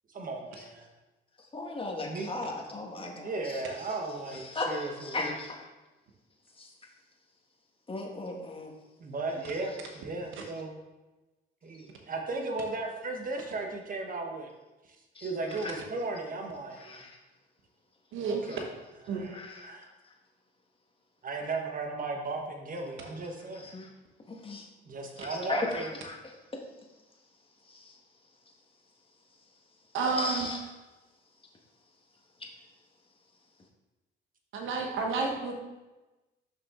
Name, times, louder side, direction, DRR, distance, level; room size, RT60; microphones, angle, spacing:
voice 1, 0.1-0.9 2.0-2.3 3.2-5.2 9.0-10.7 11.6-14.5 14.9-15.0 15.2-17.0 18.2-18.6 19.1-19.9 21.2-23.7 24.9-25.9, right 3 dB, 45° right, 2 dB, 1.3 m, -36 dB
voice 2, 1.5-3.6 4.4-5.7 6.6-6.7 7.9-8.7 15.1-15.3 15.6-15.7 16.8-17.2 18.5-18.6 19.3-19.6 23.7-23.9 24.3-24.7 25.2-26.2 27.7-27.9 30.2-30.6, left 2 dB, 25° left, 0 dB, 1.4 m, -36 dB
voice 3, 18.1-18.4 19.1-19.3 29.9-30.5 34.5-35.5, right 4 dB, 80° right, 2 dB, 1.1 m, -30 dB
5.9 x 5.9 x 3.7 m, 1.1 s
cardioid pair, 90°, 20 cm